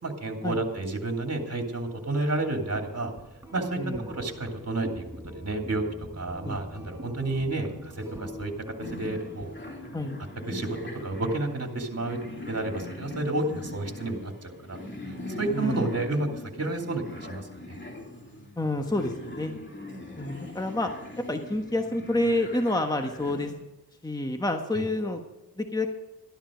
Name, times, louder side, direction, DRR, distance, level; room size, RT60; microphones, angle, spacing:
voice 1, 0.0-3.1 3.5-3.8 4.1-5.8 6.1-8.5 8.9-9.5 10.5-12.2 12.5-14.8 15.0-16.3 16.6-17.8 24.7-24.9, right 2 dB, 45° right, 3 dB, 2.8 m, -31 dB
sound 1, 1.9-10.2, left 1 dB, 10° right, 5.7 m, -45 dB
sound 2, 8.8-23.5, left 2 dB, 30° left, 2.9 m, -41 dB
voice 2, 15.5-15.9 18.6-19.5 20.2-23.5 24.0-25.2 25.6-25.9, left 1 dB, 10° left, 5 dB, 1.3 m, -28 dB
13.0 x 12.0 x 5.1 m, 1.1 s
cardioid pair, 60°, 36 cm